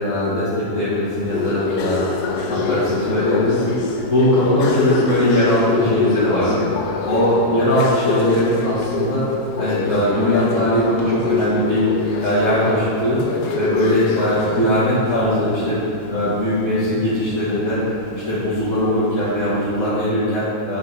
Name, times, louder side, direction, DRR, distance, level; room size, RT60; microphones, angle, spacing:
voice 1, 0.0-2.1 2.5-6.6 7.0-9.2 9.6-11.8 12.2-13.2 13.5-15.8 16.1-17.8 18.1-20.8, equal, 50° left, -12 dB, 2.2 m, -20 dB
sound 1, 1.1-19.9, left 4 dB, 75° left, 1.2 m, -26 dB
9.2 x 4.9 x 5.6 m, 2.8 s
omnidirectional pair, 1.7 m